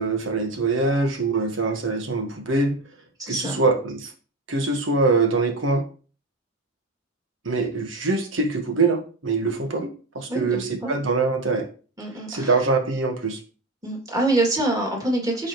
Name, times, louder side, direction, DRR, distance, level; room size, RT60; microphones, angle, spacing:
voice 1, 0.0-2.8 3.3-4.1 4.5-5.8 7.4-9.9 10.1-11.7 12.3-13.4, right 3 dB, 85° right, 4 dB, 1.4 m, -23 dB
voice 2, 3.2-3.6 10.3-10.9 12.0-12.6 13.8-15.5, right 2 dB, 20° right, -1 dB, 2.6 m, -25 dB
14.0 x 4.8 x 3.1 m, 0.37 s
head